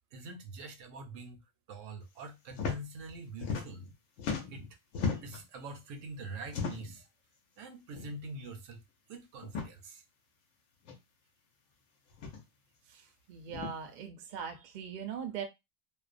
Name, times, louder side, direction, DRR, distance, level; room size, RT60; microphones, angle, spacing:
voice 1, 0.1-1.4 1.7-3.9 4.5-4.6 5.2-7.1 7.6-8.8 9.1-10.0, right 2 dB, 80° right, 0.9 m, -45 dB
sound 1, 2.5-2.8 3.1-5.5 6.5-7.0 7.9-8.1 8.4-8.5 9.4-9.7 10.9-11.0 12.1-12.4 13.5-13.7, left 5 dB, 85° left, 1.0 m, -36 dB
voice 2, 13.3-15.4, right 7 dB, 55° right, 0.5 m, -40 dB
2.5 x 2.1 x 2.4 m
omnidirectional pair, 1.3 m